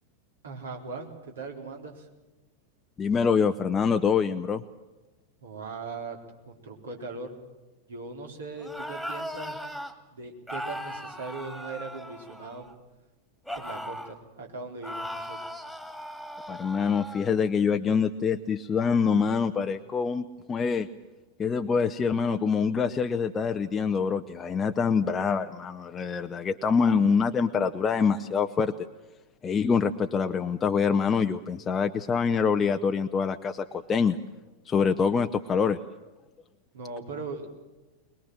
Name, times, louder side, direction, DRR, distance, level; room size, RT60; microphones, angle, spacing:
voice 1, 0.4-2.1 5.4-6.2 6.5-7.3 7.9-9.6 10.1-12.7 13.5-15.4 36.7-37.5, right 3 dB, 65° right, 2 dB, 3.9 m, -39 dB
voice 2, 3.0-4.6 16.5-20.9 21.4-28.7 29.4-34.2 34.7-35.8, left 6 dB, 20° left, 7 dB, 0.8 m, -25 dB
sound 1, 8.6-9.9 10.5-12.7 13.5-14.2 14.8-17.3, equal, ahead, 2.4 m, -38 dB
22.5 x 21.5 x 7.6 m, 1.2 s
figure-of-eight pair, 90°, 0 cm